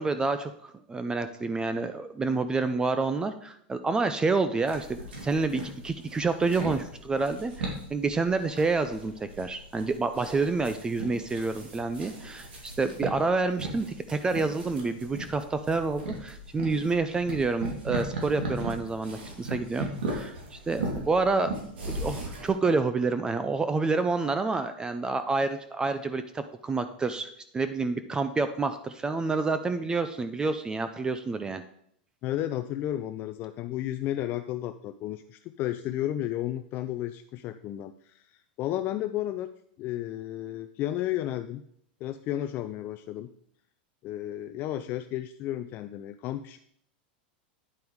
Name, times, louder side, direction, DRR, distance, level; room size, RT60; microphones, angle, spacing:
voice 1, 0.0-21.5 21.9-31.6, right 3 dB, 15° right, 10 dB, 0.5 m, -28 dB
sound 1, 4.7-22.5, right 2 dB, 90° right, 2.5 m, -38 dB
voice 2, 32.2-39.5 39.8-41.6 42.0-43.3 44.0-46.6, left 13 dB, 40° left, 9 dB, 0.4 m, -33 dB
9.7 x 5.2 x 4.7 m, 0.68 s
supercardioid pair, 130°, 5 cm